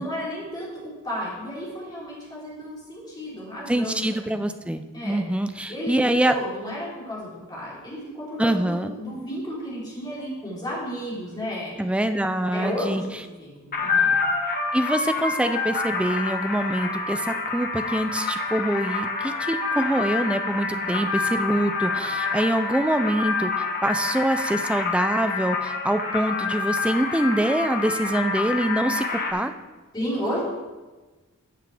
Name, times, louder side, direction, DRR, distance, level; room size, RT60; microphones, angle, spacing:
voice 1, 0.0-4.4 4.9-5.2 5.7-5.9 6.2-11.7 12.5-13.0 13.4-14.1 20.9-21.0 29.9-30.4, equal, 20° left, -7 dB, 3.5 m, -33 dB
voice 2, 3.7-6.3 8.4-8.9 11.8-13.0 14.7-29.5, right 1 dB, 5° right, 8 dB, 0.4 m, -25 dB
sound 1, 13.7-29.3, left 4 dB, 45° left, 1.2 m, -27 dB
13.5 x 7.3 x 3.4 m, 1.2 s
head